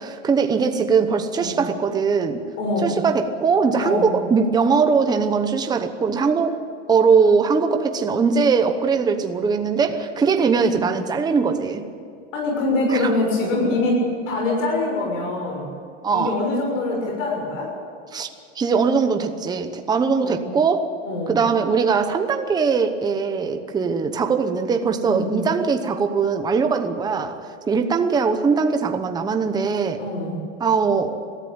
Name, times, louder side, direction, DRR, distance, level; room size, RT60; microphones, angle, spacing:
voice 1, 0.0-2.4 2.8-6.6 6.9-11.8 12.9-13.0 16.0-16.4 18.1-18.3 18.6-20.9 21.3-27.4 27.7-30.0 30.6-31.2, right 5 dB, 10° right, 6 dB, 0.9 m, -21 dB
voice 2, 2.6-3.0 3.8-4.1 10.7-10.8 12.3-15.7 16.1-17.7 20.2-20.4 21.0-21.4 25.0-25.3 30.0-30.3, left 2 dB, 90° left, -1 dB, 6.5 m, -24 dB
22.0 x 14.0 x 8.9 m, 2.4 s
supercardioid pair, 155°, 36 cm